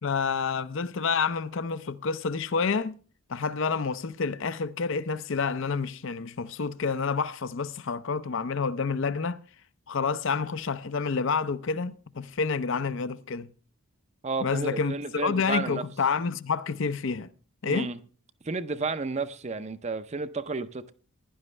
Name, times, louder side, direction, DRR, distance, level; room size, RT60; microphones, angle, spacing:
voice 1, 0.0-3.0 3.3-9.4 9.9-13.5 14.4-17.3 17.6-17.9, left 5 dB, 55° left, 0.5 m, -29 dB
voice 2, 14.2-15.8 17.6-18.0 18.4-20.9, right 3 dB, 30° right, 0.5 m, -32 dB
16.0 x 11.0 x 3.3 m
head